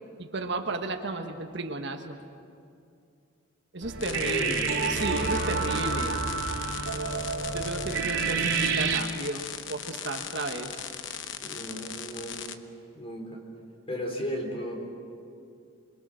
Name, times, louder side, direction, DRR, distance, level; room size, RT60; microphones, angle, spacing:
voice 1, 0.2-2.2 3.7-4.6 4.9-6.2 7.5-10.8, right 2 dB, 60° right, 5 dB, 1.5 m, -33 dB
sound 1, 3.8-9.0, right 5 dB, 90° right, 2.9 m, -29 dB
sound 2, 4.0-12.6, left 9 dB, 65° left, 1.0 m, -39 dB
voice 2, 4.0-6.2 11.4-12.6 12.9-13.4 13.9-14.8, equal, 30° left, 1 dB, 4.0 m, -35 dB
26.5 x 22.5 x 6.4 m, 2.4 s
head